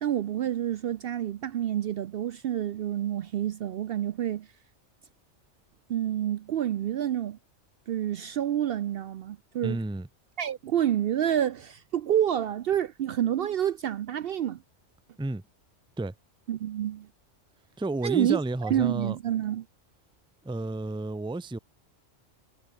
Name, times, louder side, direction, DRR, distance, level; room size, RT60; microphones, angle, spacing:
voice 1, 0.0-4.5 5.9-7.4 7.9-9.8 10.4-14.6 16.5-17.1 18.0-19.7, right 11 dB, 60° right, 0.7 m, -28 dB
voice 2, 9.6-10.1 15.2-15.4 16.0-16.1 17.8-19.2 20.4-21.6, right 2 dB, 5° right, 0.5 m, -31 dB
omnidirectional pair, 1.2 m